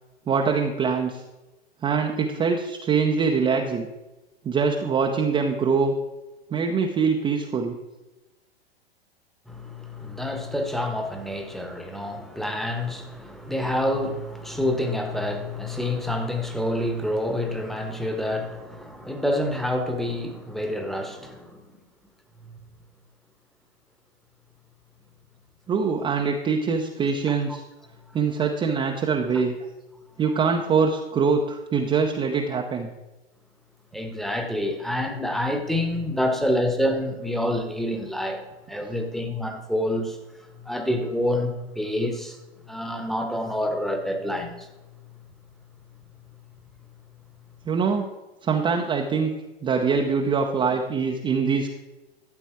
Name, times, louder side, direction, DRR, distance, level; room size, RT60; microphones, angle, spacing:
voice 1, 0.3-1.2 1.8-3.9 4.4-6.0 6.5-7.8 25.7-27.6 28.1-29.5 30.2-32.9 47.7-48.0 48.4-49.3 49.6-51.7, right 5 dB, 15° right, 0.8 m, -23 dB
voice 2, 9.5-21.6 27.3-27.4 28.4-28.5 33.9-40.2 40.6-42.4 42.6-44.7, left 1 dB, ahead, 1.2 m, -27 dB
13.0 x 8.1 x 4.5 m
figure-of-eight pair, 105°, 31 cm